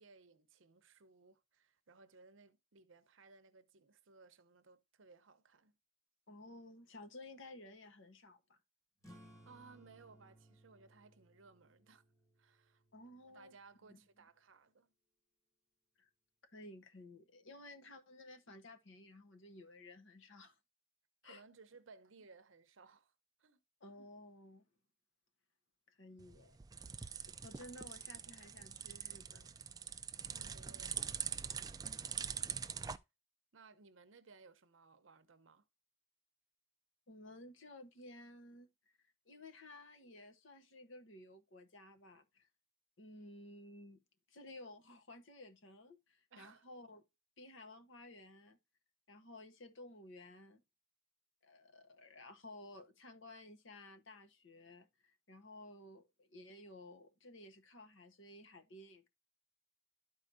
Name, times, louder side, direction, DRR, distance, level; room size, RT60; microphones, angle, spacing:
voice 1, 0.0-5.8 9.5-12.0 12.4-12.8 13.3-14.9 21.2-23.1 23.4-23.6 30.3-31.7 32.3-32.5 33.5-35.7 46.3-46.7, right 4 dB, 70° right, 0.8 m, -62 dB
voice 2, 6.3-8.6 12.9-13.5 13.9-14.0 16.0-16.1 16.5-20.6 21.2-21.4 23.8-24.6 25.9-26.6 27.4-29.5 37.1-39.0 39.3-42.5 43.0-44.0 44.3-47.0 47.4-48.6 49.1-50.6 51.4-59.1, left 1 dB, 65° left, 1.1 m, -55 dB
sound 1, 9.0-14.1, equal, 15° left, 1.5 m, -63 dB
sound 2, 26.2-33.0, right 7 dB, 20° right, 0.3 m, -44 dB
12.5 x 4.7 x 2.6 m
head